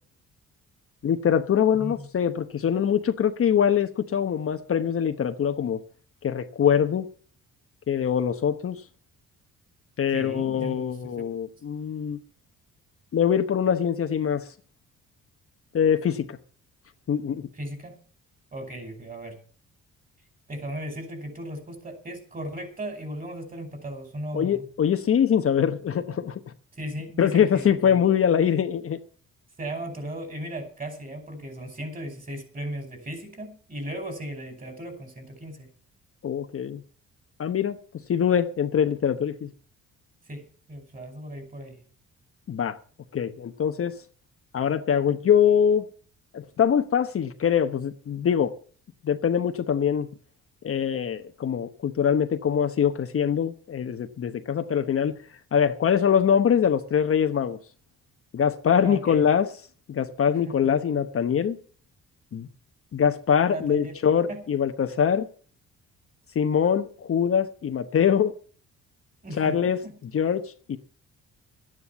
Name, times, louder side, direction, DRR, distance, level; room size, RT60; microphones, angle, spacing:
voice 1, 1.0-5.8 6.2-7.1 7.9-8.8 10.0-12.2 13.1-14.4 15.7-16.4 17.1-17.5 24.3-26.4 27.2-29.0 36.2-36.8 37.4-37.8 38.1-39.5 42.5-42.8 43.1-44.0 44.5-45.9 46.3-48.5 49.0-50.1 50.6-55.1 55.5-57.6 58.3-59.5 59.9-61.6 62.3-62.5 62.9-65.3 66.3-68.3 69.4-69.8 70.1-70.8, left 8 dB, 50° left, 1.1 m, -23 dB
voice 2, 10.1-11.0 17.5-18.0 18.5-19.4 20.5-24.6 26.7-28.0 29.6-35.7 40.3-41.8 58.8-59.2 60.5-60.6 63.5-63.9 64.3-64.4 69.2-69.6 69.8-69.9, right 1 dB, 30° right, 5.2 m, -36 dB
12.0 x 9.9 x 7.1 m
cardioid pair, 90°, 30 cm